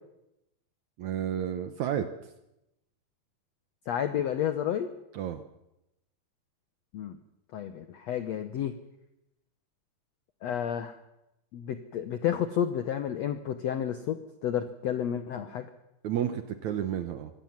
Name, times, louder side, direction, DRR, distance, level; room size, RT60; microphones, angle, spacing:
voice 1, 1.0-2.1 5.1-5.4 16.0-17.3, right 10 dB, 70° right, 10 dB, 1.8 m, -31 dB
voice 2, 3.9-4.9 6.9-7.2 7.5-8.8 10.4-11.0 11.5-15.7, left 9 dB, 75° left, 10 dB, 1.5 m, -31 dB
24.0 x 17.5 x 7.4 m, 0.87 s
omnidirectional pair, 4.4 m